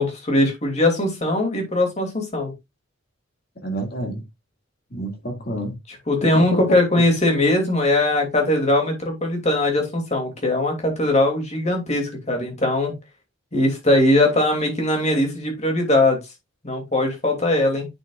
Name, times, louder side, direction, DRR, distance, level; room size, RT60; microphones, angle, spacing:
voice 1, 0.0-2.5 6.1-13.0 13.5-16.2 16.6-17.9, left 1 dB, 35° left, 2.7 m, -20 dB
voice 2, 3.6-4.2 4.9-5.8 6.3-7.0, right 1 dB, 50° left, 2.0 m, -29 dB
9.2 x 6.0 x 2.4 m
head